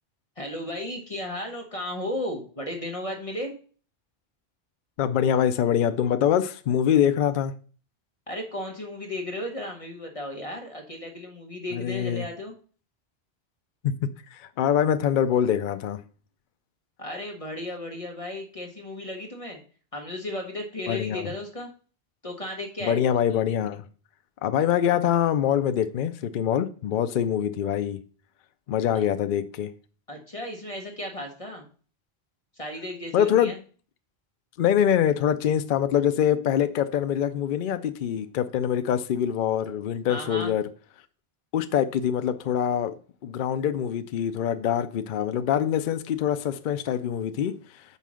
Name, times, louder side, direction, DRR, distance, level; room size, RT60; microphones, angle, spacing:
voice 1, 0.4-3.5 8.3-12.5 17.0-19.6 19.9-21.7 22.2-23.0 28.9-29.1 30.1-31.7 32.6-33.6 40.1-40.5, left 1 dB, 35° left, 1.1 m, -34 dB
voice 2, 5.0-7.5 11.7-12.3 13.8-16.0 20.9-21.3 22.8-23.8 24.4-28.0 28.7-29.7 33.1-33.5 34.6-40.6 41.5-43.0 43.2-47.6, left 9 dB, 60° left, 0.6 m, -24 dB
5.6 x 4.5 x 6.2 m
omnidirectional pair, 1.1 m